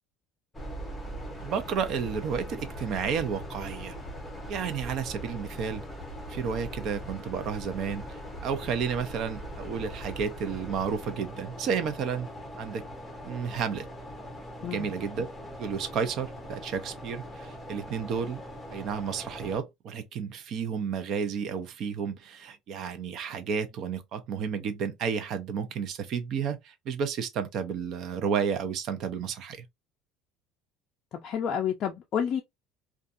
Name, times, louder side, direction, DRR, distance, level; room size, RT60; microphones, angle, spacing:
sound 1, 0.5-19.6, equal, 5° left, 0.8 m, -41 dB
voice 1, 1.4-3.9 4.5-5.8 6.3-12.3 12.6-12.8 13.2-13.8 14.6-15.3 15.6-18.4 18.7-29.6, right 6 dB, 45° right, 0.5 m, -32 dB
voice 2, 31.2-32.4, left 8 dB, 40° left, 0.4 m, -29 dB
2.5 x 2.3 x 2.5 m
cardioid pair, 155°, 0 cm